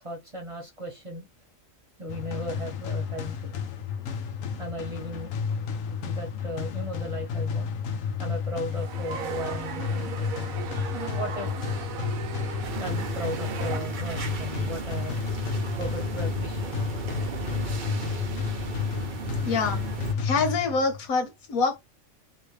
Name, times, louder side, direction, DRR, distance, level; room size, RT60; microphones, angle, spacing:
voice 1, 0.0-1.2 2.0-3.5 4.6-5.3 6.0-7.7 8.2-10.1 10.9-11.6 12.8-15.2 15.8-16.7, equal, 25° right, 1.0 m, -36 dB
sound 1, 2.1-21.1, left 6 dB, 70° left, 1.0 m, -32 dB
sound 2, 8.7-13.8, right 7 dB, 85° right, 1.1 m, -37 dB
sound 3, 12.6-20.1, right 5 dB, 45° right, 0.7 m, -35 dB
voice 2, 19.4-19.8 20.2-21.8, left 4 dB, 85° left, 1.5 m, -25 dB
2.9 x 2.9 x 3.1 m
omnidirectional pair, 1.4 m